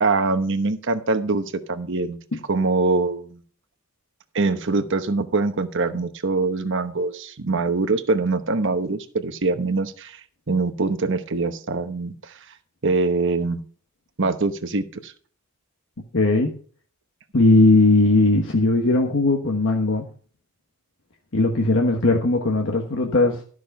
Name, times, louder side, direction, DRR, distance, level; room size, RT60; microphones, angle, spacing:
voice 1, 0.0-2.2 2.5-3.4 4.3-10.2 10.5-12.3 12.8-13.6 14.2-15.1, right 3 dB, 60° right, 9 dB, 1.0 m, -23 dB
voice 2, 16.1-16.5 17.3-20.1 21.3-23.4, left 2 dB, 60° left, 2 dB, 1.3 m, -18 dB
12.5 x 6.4 x 5.4 m, 0.44 s
head